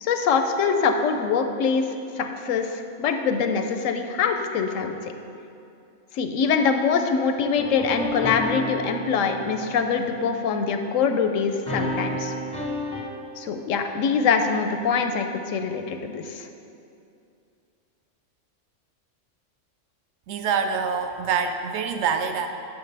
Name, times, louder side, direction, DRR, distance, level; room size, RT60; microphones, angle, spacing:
voice 1, 0.0-1.9 2.2-5.0 6.1-12.3 13.4-16.5, left 5 dB, 90° left, 6 dB, 1.0 m, -24 dB
sound 1, 7.6-10.8 11.7-13.0, equal, 5° left, 0.6 m, -31 dB
voice 2, 20.3-22.5, right 6 dB, 65° right, 7 dB, 0.9 m, -25 dB
10.5 x 5.7 x 3.3 m, 2.6 s
omnidirectional pair, 1.3 m